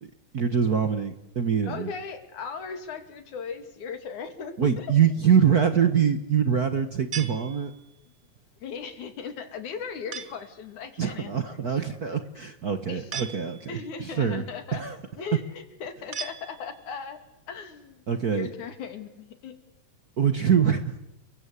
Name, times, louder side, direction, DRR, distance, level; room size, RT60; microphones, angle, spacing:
voice 1, 0.0-1.9 4.6-7.7 11.0-14.4 14.7-15.3 18.1-18.5 20.2-20.9, right 7 dB, 45° right, 9 dB, 1.2 m, -24 dB
voice 2, 1.6-4.9 8.6-11.6 12.9-13.1 13.7-14.8 15.2-17.2 17.5-18.0 18.3-19.6 20.6-20.7, left 6 dB, 90° left, 8 dB, 4.0 m, -38 dB
sound 1, 7.1-8.1 10.1-10.6 13.1-13.9 16.1-17.0, right 6 dB, 70° right, 0.6 m, -39 dB
29.5 x 23.5 x 8.3 m, 0.87 s
omnidirectional pair, 3.3 m